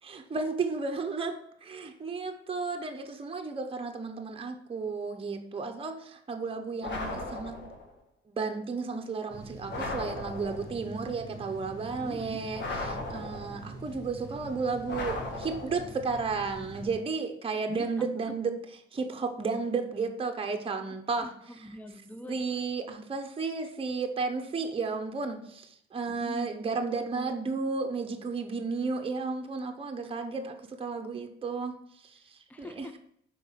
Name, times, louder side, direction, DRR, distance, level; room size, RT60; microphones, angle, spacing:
voice 1, 0.0-1.3 1.6-7.6 8.3-18.5 18.9-21.3 21.6-21.7 22.3-32.9, right 4 dB, 30° right, 5 dB, 0.8 m, -33 dB
sound 1, 6.8-7.9 9.7-10.8 12.5-13.7 14.9-16.0, left 2 dB, 65° left, 1.7 m, -37 dB
sound 2, 9.3-16.9, right 2 dB, 50° left, 3.0 m, -45 dB
voice 2, 12.0-12.4 17.7-18.1 21.2-22.4 26.1-26.5 32.5-33.0, equal, 10° left, 8 dB, 0.5 m, -43 dB
5.3 x 4.2 x 5.7 m, 0.71 s
cardioid pair, 90°, 20 cm